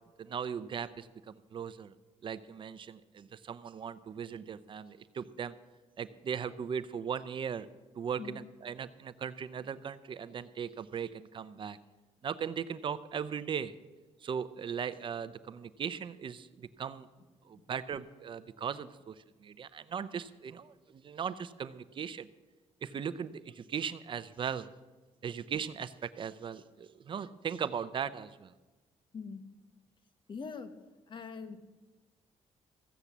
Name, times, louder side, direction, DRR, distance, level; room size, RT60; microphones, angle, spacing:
voice 1, 0.2-1.9 2.2-5.5 6.0-7.7 8.0-11.8 12.2-13.7 14.2-17.1 17.5-19.1 19.4-22.3 22.8-24.7 25.2-28.5, right 7 dB, 45° right, 14 dB, 0.6 m, -38 dB
voice 2, 29.1-29.4 30.3-30.7 31.1-31.6, left 5 dB, 45° left, 10 dB, 1.2 m, -43 dB
15.0 x 8.0 x 7.2 m, 1.2 s
cardioid pair, 110°, 12 cm